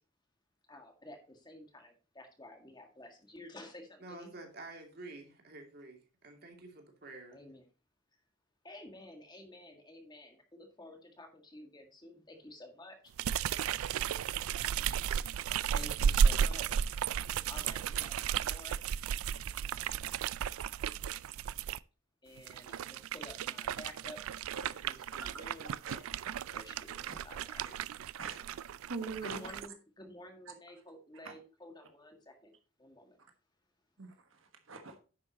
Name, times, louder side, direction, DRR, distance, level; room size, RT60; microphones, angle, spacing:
voice 1, 0.7-4.3 7.3-7.6 8.6-13.0 15.7-16.8 17.4-18.8 22.2-24.2 24.8-25.8 26.5-27.8 29.2-32.5 32.8-33.2, left 1 dB, 20° left, 1.8 m, -51 dB
voice 2, 4.0-7.4, right 2 dB, 50° right, 2.5 m, -49 dB
sound 1, 13.2-21.8 22.4-29.7, right 8 dB, 90° right, 0.4 m, -34 dB
voice 3, 28.2-29.4 31.2-31.3 34.0-34.1 34.7-35.0, right 4 dB, 75° right, 1.4 m, -42 dB
10.5 x 8.0 x 2.9 m
head